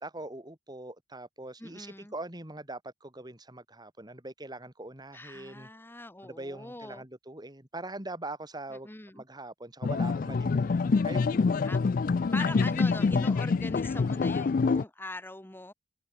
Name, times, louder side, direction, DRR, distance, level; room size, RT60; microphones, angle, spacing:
voice 1, 0.0-5.7 6.2-8.9 9.1-11.6, right 2 dB, 25° right, 3.3 m, -42 dB
voice 2, 1.6-2.1 5.1-7.0 8.8-9.2 11.6-11.8 12.3-15.7, left 1 dB, 10° left, 1.4 m, -42 dB
sound 1, 9.8-14.8, left 4 dB, 50° left, 0.4 m, -26 dB
head